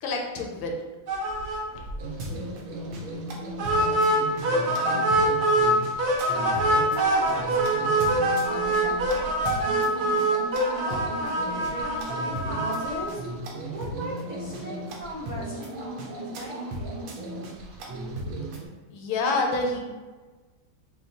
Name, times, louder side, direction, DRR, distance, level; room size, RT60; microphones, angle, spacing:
voice 1, 0.0-0.7 18.9-19.8, left 3 dB, 75° left, 1 dB, 1.4 m, -27 dB
sound 1, 1.1-1.6 1.9-2.0 2.3-2.4 3.6-5.7 6.0-13.0, right 1 dB, 60° right, 1.1 m, -24 dB
sound 2, 2.0-18.7, right 1 dB, 85° right, 1.6 m, -36 dB
voice 2, 4.7-10.4 11.0-13.2 13.7-16.8, right 1 dB, 30° right, -9 dB, 0.7 m, -40 dB
6.6 x 2.3 x 2.9 m, 1.3 s
omnidirectional pair, 2.2 m